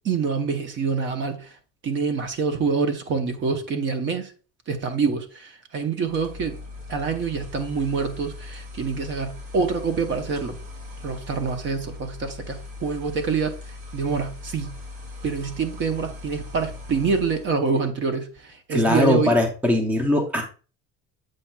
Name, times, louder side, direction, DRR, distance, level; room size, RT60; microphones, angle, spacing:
voice 1, 0.0-1.5 1.8-4.3 4.7-6.6 6.9-10.6 11.0-13.6 13.9-14.8 15.2-19.3, right 5 dB, 35° right, 0.8 m, -26 dB
sound 1, 6.0-17.6, left 3 dB, 85° right, 3.0 m, -39 dB
voice 2, 18.7-20.4, left 1 dB, 5° right, 0.6 m, -20 dB
7.7 x 5.8 x 2.3 m
cardioid pair, 175°, 32 cm